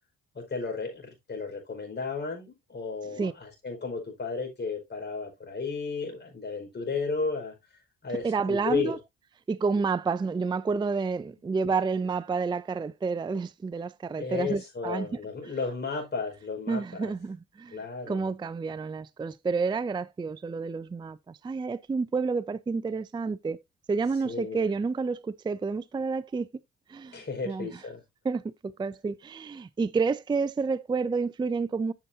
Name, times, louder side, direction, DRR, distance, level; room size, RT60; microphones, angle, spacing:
voice 1, 0.3-7.5 8.0-9.0 14.1-17.1 17.7-18.2 24.2-24.7 27.1-28.0, left 4 dB, 35° left, 4.9 m, -33 dB
voice 2, 8.2-9.0 9.5-15.2 16.7-17.8 18.1-23.6 23.9-26.5 26.9-27.8 28.2-31.9, right 4 dB, 15° right, 0.4 m, -29 dB
8.8 x 6.9 x 2.7 m
cardioid pair, 90°, 30 cm